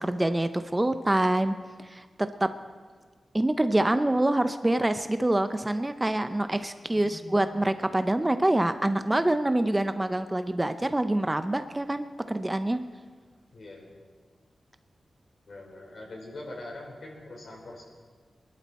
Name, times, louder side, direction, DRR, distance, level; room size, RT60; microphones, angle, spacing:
voice 1, 0.0-2.1 2.4-2.5 3.3-12.8, right 1 dB, 15° right, 10 dB, 0.5 m, -26 dB
voice 2, 6.9-7.4 13.5-13.9 15.5-17.8, left 2 dB, 60° left, -1 dB, 4.2 m, -43 dB
23.0 x 11.5 x 4.2 m, 1.5 s
wide cardioid pair, 110°, 0 cm